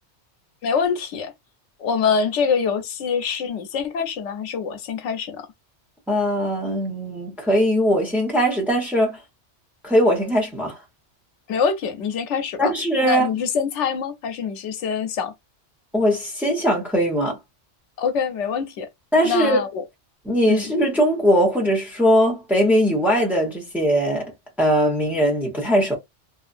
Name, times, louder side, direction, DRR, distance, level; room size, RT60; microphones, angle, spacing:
voice 1, 0.6-1.3 1.8-5.5 11.5-12.7 13.0-15.3 18.0-18.9 19.2-19.8 20.5-20.7, left 6 dB, 85° left, 0.9 m, -24 dB
voice 2, 6.1-9.2 9.8-10.8 12.6-13.3 15.9-17.4 19.1-19.6 20.2-24.3 24.6-26.0, equal, ahead, 0.8 m, -20 dB
2.6 x 2.4 x 2.5 m
omnidirectional pair, 1.2 m